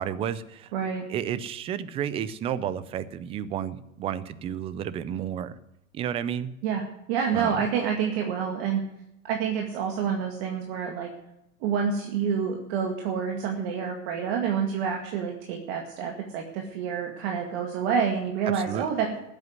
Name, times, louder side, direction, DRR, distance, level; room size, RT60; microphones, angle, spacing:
voice 1, 0.0-0.7 1.1-5.6 5.9-6.5 7.3-7.6 18.5-18.9, right 9 dB, 15° right, 16 dB, 0.4 m, -31 dB
voice 2, 0.7-1.0 6.6-8.8 9.2-11.1 11.6-19.2, right 7 dB, 50° right, 3 dB, 2.0 m, -28 dB
14.5 x 8.4 x 9.4 m, 0.84 s
supercardioid pair, 150°, 40 cm